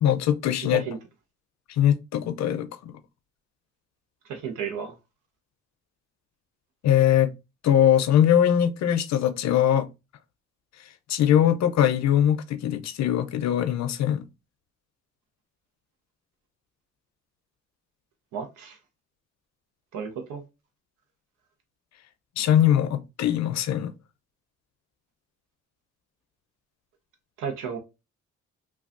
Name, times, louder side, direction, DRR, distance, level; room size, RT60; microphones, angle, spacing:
voice 1, 0.0-0.8 1.7-2.9 6.8-7.3 7.6-9.9 11.1-14.3 22.4-23.9, left 10 dB, 65° left, 0.5 m, -21 dB
voice 2, 0.6-1.0 4.3-4.9 18.3-18.8 19.9-20.4 27.4-27.8, right 6 dB, 90° right, 0.7 m, -33 dB
3.3 x 2.3 x 2.4 m
cardioid pair, 90°, 30 cm